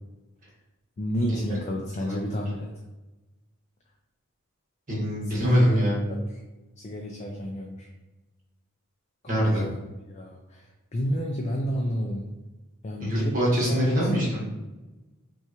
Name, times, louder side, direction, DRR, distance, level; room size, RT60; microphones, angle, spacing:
voice 1, 1.0-2.7 5.3-5.8 6.1-6.2 6.8-7.9 9.2-9.7 10.1-12.4 12.8-13.4 13.7-14.1, equal, 30° left, 1 dB, 0.4 m, -30 dB
voice 2, 4.9-6.0 9.3-9.6 13.0-14.4, equal, 40° right, -4 dB, 1.4 m, -24 dB
5.6 x 2.4 x 2.9 m, 1.1 s
head